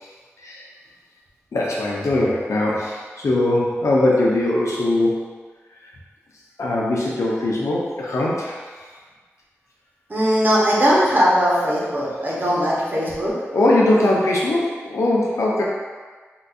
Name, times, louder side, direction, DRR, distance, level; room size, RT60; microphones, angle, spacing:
voice 1, 1.5-5.3 6.6-8.6 13.5-15.6, left 1 dB, 85° left, -4 dB, 0.6 m, -20 dB
voice 2, 10.1-13.3, equal, 40° right, -6 dB, 0.9 m, -19 dB
3.9 x 2.5 x 2.3 m, 1.4 s
wide cardioid pair, 85°, 5 cm